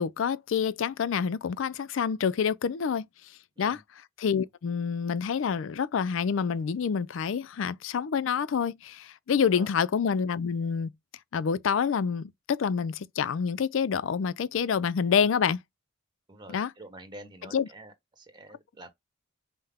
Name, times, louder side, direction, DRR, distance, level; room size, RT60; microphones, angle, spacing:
voice 1, 0.0-3.1 3.6-3.8 4.2-10.9 11.3-15.6 16.5-16.7 17.5-17.7, left 6 dB, 65° left, 0.4 m, -27 dB
voice 2, 16.3-18.9, right 1 dB, 20° right, 1.2 m, -48 dB
5.5 x 2.1 x 3.4 m
head